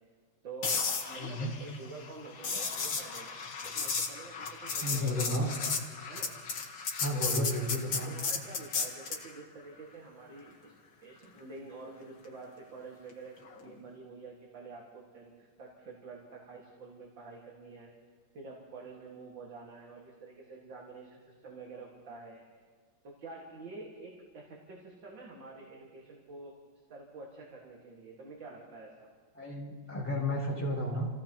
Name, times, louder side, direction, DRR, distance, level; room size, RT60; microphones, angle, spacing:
voice 1, 0.4-5.8 6.1-6.3 7.0-7.5 8.1-10.7 11.0-17.9 18.3-22.4 23.0-26.5 26.9-29.1, right 4 dB, 70° right, -3 dB, 2.7 m, -48 dB
sound 1, 0.6-9.3 13.5-13.7, left 5 dB, 75° left, 2.2 m, -34 dB
voice 2, 1.2-1.5 4.8-5.5 7.0-8.1 29.3-31.1, left 1 dB, 5° left, -9 dB, 6.0 m, -32 dB
28.5 x 17.0 x 3.0 m, 1.6 s
omnidirectional pair, 2.1 m